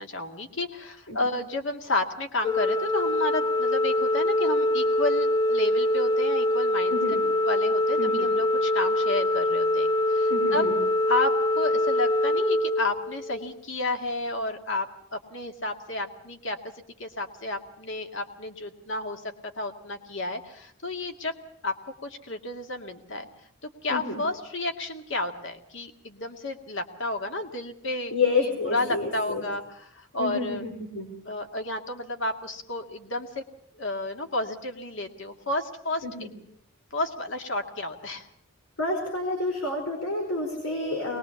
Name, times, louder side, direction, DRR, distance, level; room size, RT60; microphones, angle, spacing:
voice 1, 0.0-7.2 7.4-10.6 11.1-16.6 17.0-19.2 19.6-21.4 21.6-23.3 23.6-28.1 28.7-30.6 31.3-33.4 33.7-36.3 36.9-38.3, left 2 dB, 60° left, 5 dB, 2.1 m, -31 dB
Organ, 2.4-13.5, left 1 dB, 20° left, 1.2 m, -24 dB
voice 2, 6.9-7.2 8.0-8.3 10.3-10.8 23.9-24.2 28.1-29.4 30.2-31.1 36.0-36.3 38.8-41.2, left 3 dB, 90° left, 1 dB, 4.8 m, -29 dB
22.0 x 20.5 x 7.1 m, 0.66 s
head